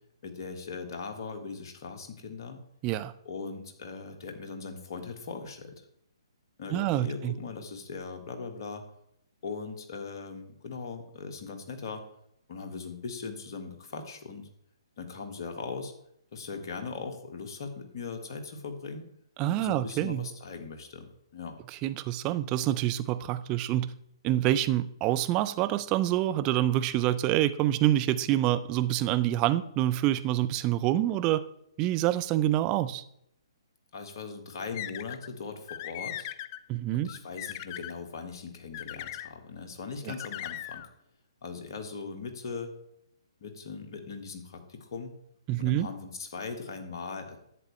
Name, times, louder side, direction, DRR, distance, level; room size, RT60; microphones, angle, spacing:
voice 1, 0.2-2.6 3.2-5.8 6.6-8.8 9.4-12.0 12.5-14.5 15.0-15.9 16.3-19.1 19.5-21.6 33.9-36.3 36.9-40.9 41.4-42.7 43.4-45.1 45.6-47.4, left 4 dB, 50° left, 4 dB, 1.6 m, -39 dB
voice 2, 6.7-7.3 19.4-20.2 21.8-23.9 24.2-31.4 31.8-33.0 36.7-37.1 40.1-40.2 45.5-45.9, right 13 dB, 25° right, 13 dB, 0.5 m, -26 dB
sound 1, 34.7-35.3 35.7-36.6 37.1-37.9 38.7-39.3 40.1-40.9, left 13 dB, 35° left, 0.4 m, -39 dB
11.0 x 8.2 x 3.2 m, 0.74 s
figure-of-eight pair, 130°, 3 cm